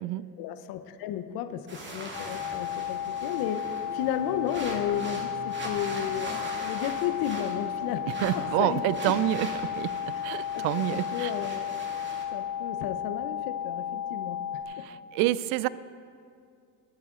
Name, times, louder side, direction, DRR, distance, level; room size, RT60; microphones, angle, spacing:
voice 1, 0.4-8.0 8.3-9.2 10.3-11.9 12.3-14.9, left 9 dB, 45° left, 9 dB, 0.9 m, -33 dB
sound 1, 1.7-12.2, right 2 dB, 20° right, 2.5 m, -41 dB
sound 2, 2.1-14.6, left 9 dB, 75° left, 2.9 m, -34 dB
voice 2, 8.2-11.3 14.8-15.7, right 15 dB, 50° right, 18 dB, 0.5 m, -28 dB
20.5 x 8.4 x 3.8 m, 2.3 s
hypercardioid pair, 95°, 49 cm